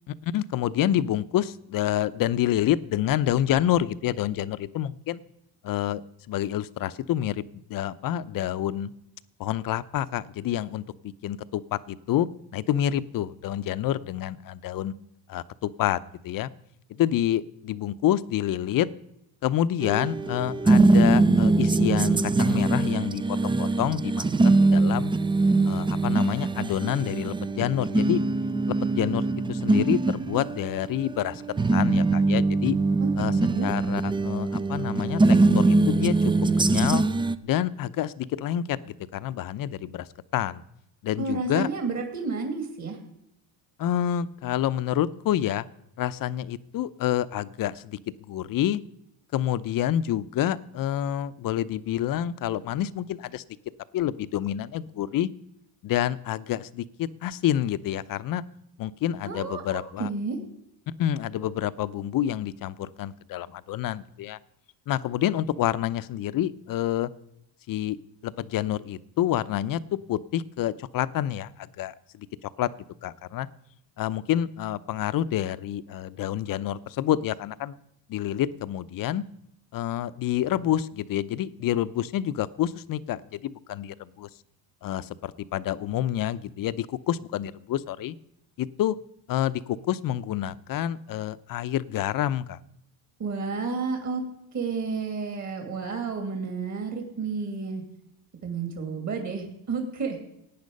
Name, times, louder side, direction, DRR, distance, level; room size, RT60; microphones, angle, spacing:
voice 1, 0.1-5.2 5.6-6.0 6.3-8.9 9.4-14.9 15.3-16.5 16.9-18.9 19.4-25.1 25.6-28.2 28.7-29.2 29.5-31.4 31.7-32.7 33.2-33.3 33.6-37.0 37.4-40.1 40.3-40.6 41.0-41.7 43.8-45.6 46.0-48.0 48.3-48.8 49.3-53.4 53.9-55.3 55.8-58.4 58.8-60.1 61.0-64.4 64.9-67.1 67.7-68.0 68.2-72.7 73.0-73.5 74.0-77.8 78.1-79.2 79.7-84.3 84.8-88.2 88.6-89.0 89.3-92.6, left 12 dB, 45° left, 16 dB, 0.7 m, -28 dB
sound 1, 19.8-37.3, right 3 dB, 10° right, 0.4 m, -22 dB
voice 2, 33.0-33.7 41.2-43.0 59.2-60.4 93.2-94.2 94.5-97.8 98.4-100.2, right 4 dB, 40° right, 3 dB, 2.7 m, -31 dB
17.5 x 9.5 x 5.4 m, 0.80 s
cardioid pair, 110°, 45 cm